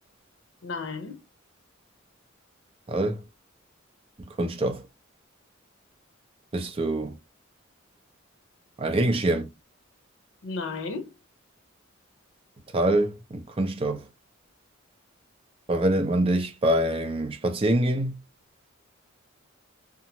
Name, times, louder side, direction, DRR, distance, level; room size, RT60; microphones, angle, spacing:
voice 1, 0.6-1.2 10.4-11.1, left 4 dB, 75° left, 0.7 m, -33 dB
voice 2, 2.9-3.2 4.4-4.8 6.5-7.1 8.8-9.5 12.7-14.0 15.7-18.1, right 1 dB, 30° right, 0.5 m, -25 dB
2.8 x 2.4 x 2.7 m
head